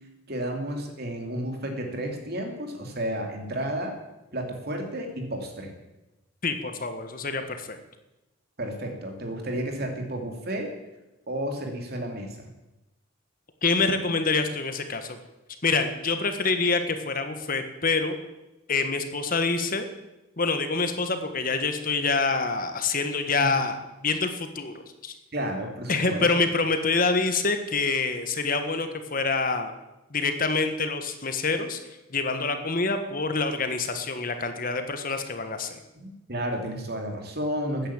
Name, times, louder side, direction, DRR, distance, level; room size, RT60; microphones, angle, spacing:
voice 1, 0.3-3.9 4.3-5.7 8.6-10.7 11.3-12.4 23.4-23.5 25.3-26.3 36.0-37.9, right 1 dB, 50° right, 3 dB, 2.9 m, -32 dB
voice 2, 6.4-7.8 13.6-15.2 15.6-18.1 18.7-19.9 20.4-23.8 24.0-25.1 25.9-29.7 30.1-31.8 32.1-35.8, left 4 dB, 40° left, 8 dB, 1.4 m, -26 dB
14.0 x 9.8 x 8.7 m, 1.0 s
head